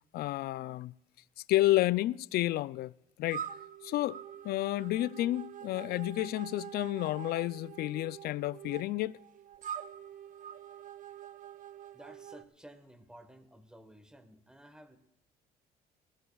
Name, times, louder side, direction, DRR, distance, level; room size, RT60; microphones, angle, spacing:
voice 1, 0.1-0.9 1.5-2.9 3.2-3.5 3.8-9.1, left 16 dB, 65° left, 0.4 m, -31 dB
sound 1, 3.3-12.4, right 9 dB, 50° right, 0.6 m, -45 dB
voice 2, 11.9-15.0, right 1 dB, 5° right, 1.3 m, -54 dB
21.0 x 15.0 x 2.4 m
cardioid pair, 110°, 17 cm